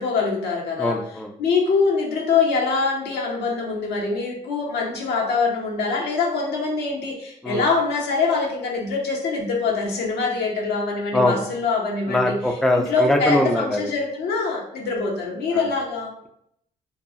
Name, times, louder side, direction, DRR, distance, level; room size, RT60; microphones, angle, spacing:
voice 1, 0.0-1.0 1.4-12.3 12.7-16.1, left 4 dB, 75° left, 0 dB, 0.7 m, -24 dB
voice 2, 0.8-1.3 7.4-7.7 11.1-11.4 12.1-13.9 15.5-15.7, left 1 dB, ahead, 3 dB, 0.4 m, -22 dB
2.8 x 2.3 x 2.7 m, 0.71 s
supercardioid pair, 50°, 17 cm